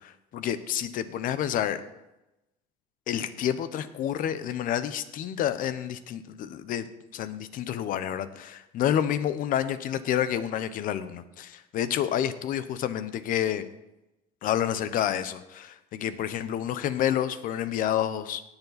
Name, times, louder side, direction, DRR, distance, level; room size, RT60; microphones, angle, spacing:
voice 1, 0.0-1.8 3.1-6.9 7.1-13.7 14.4-18.4, left 10 dB, 55° left, 13 dB, 0.9 m, -29 dB
17.5 x 7.1 x 4.1 m, 0.95 s
cardioid pair, 110°, 16 cm